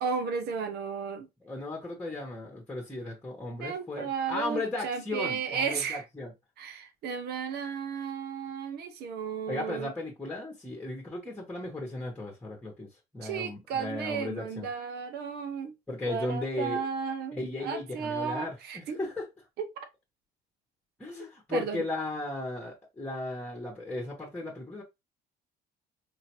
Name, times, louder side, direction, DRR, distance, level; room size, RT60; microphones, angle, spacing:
voice 1, 0.0-1.3 3.6-6.0 6.6-9.9 13.2-15.7 16.1-19.0 19.6-19.7 21.5-21.8, right 6 dB, 70° right, 0.9 m, -34 dB
voice 2, 1.4-6.3 9.5-12.9 13.1-14.7 15.9-16.8 17.3-19.3 21.0-24.8, left 2 dB, 10° left, 1.3 m, -36 dB
4.4 x 2.8 x 3.0 m
cardioid pair, 110°, 17 cm